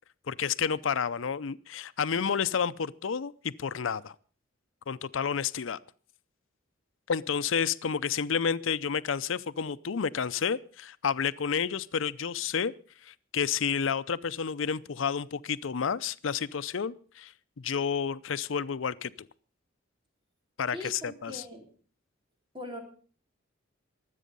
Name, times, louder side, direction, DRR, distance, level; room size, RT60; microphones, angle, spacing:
voice 1, 0.3-4.1 4.9-5.8 7.1-12.7 13.1-17.3 17.6-19.3 20.6-21.4, left 6 dB, 80° left, 16 dB, 0.6 m, -30 dB
voice 2, 20.7-21.7 22.5-22.8, left 1 dB, 25° right, 2 dB, 3.9 m, -41 dB
23.0 x 8.4 x 5.3 m, 0.42 s
head